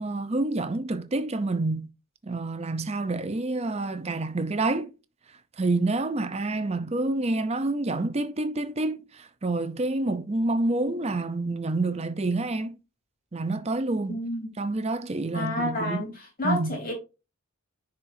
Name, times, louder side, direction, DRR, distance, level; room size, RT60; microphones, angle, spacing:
voice 1, 0.0-1.9 2.2-4.9 5.6-12.8 13.3-14.2 14.6-16.0 16.4-16.8, right 2 dB, 30° right, 0.5 m, -28 dB
voice 2, 14.1-14.5 15.3-16.9, left 1 dB, 40° left, 3.2 m, -30 dB
10.0 x 4.4 x 2.6 m
head